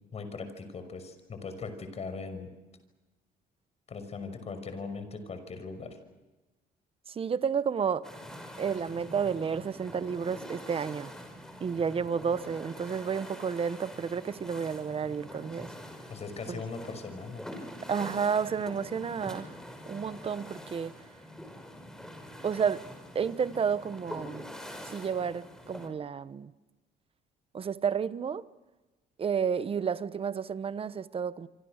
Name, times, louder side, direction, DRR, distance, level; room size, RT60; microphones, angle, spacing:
voice 1, 0.1-2.5 3.9-6.0 16.1-17.5, left 4 dB, 40° left, 6.0 m, -39 dB
voice 2, 7.1-8.1 8.6-11.1 11.6-15.7 16.5-16.6 17.9-19.6 19.9-21.1 22.4-22.8 23.1-24.5 24.8-26.5 27.5-28.4 29.2-31.5, right 6 dB, 35° right, 1.1 m, -31 dB
sound 1, 8.0-25.9, equal, 5° left, 5.6 m, -45 dB
26.5 x 26.0 x 6.6 m
cardioid pair, 110°, 17 cm